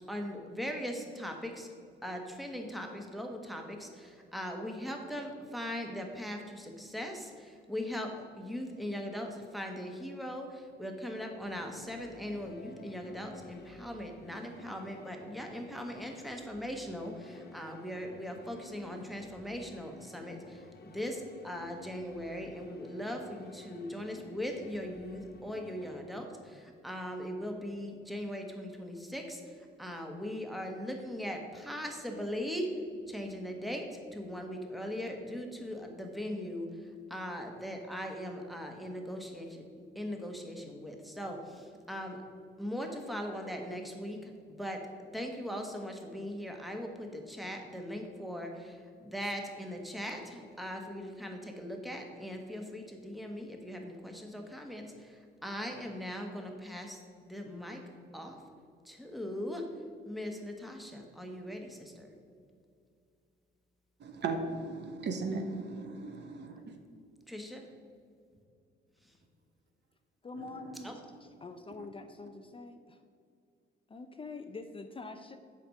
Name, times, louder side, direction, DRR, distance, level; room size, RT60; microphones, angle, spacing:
voice 1, 0.1-1.7 2.0-32.8 33.1-42.2 42.6-58.4 58.8-59.7 60.0-62.1 67.3-67.7 69.0-69.1 70.8-70.9, equal, ahead, 2 dB, 1.3 m, -40 dB
sound 1, 11.3-26.0, left 4 dB, 55° left, 0.9 m, -53 dB
voice 2, 64.0-66.8 70.3-70.8 71.8-71.9, right 3 dB, 60° right, 5 dB, 1.1 m, -37 dB
voice 3, 70.2-70.9 71.2-73.0 73.9-75.4, left 3 dB, 25° left, 7 dB, 0.5 m, -45 dB
7.8 x 5.2 x 6.4 m, 2.4 s
cardioid pair, 90°, 20 cm